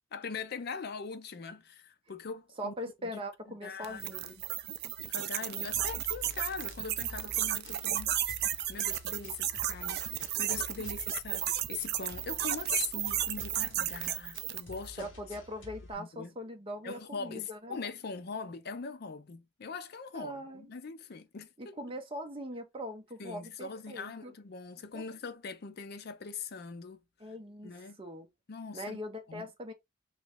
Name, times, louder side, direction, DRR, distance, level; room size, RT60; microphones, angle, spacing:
voice 1, 0.1-2.8 3.0-3.2 3.5-4.0 5.0-8.1 8.7-15.1 16.0-16.3 16.8-21.8 23.2-27.0 27.6-28.0 28.5-29.0 29.3-29.5, left 5 dB, 50° left, 0.5 m, -41 dB
voice 2, 2.6-4.3 10.8-10.9 15.0-17.8 20.1-20.7 21.6-24.3 24.9-25.0 27.2-27.7 28.0-28.3 28.7-29.7, equal, 25° right, 0.7 m, -41 dB
sound 1, 3.8-14.8, right 12 dB, 50° right, 0.4 m, -33 dB
sound 2, 5.7-15.9, left 1 dB, 70° left, 1.2 m, -49 dB
3.0 x 2.6 x 3.3 m
head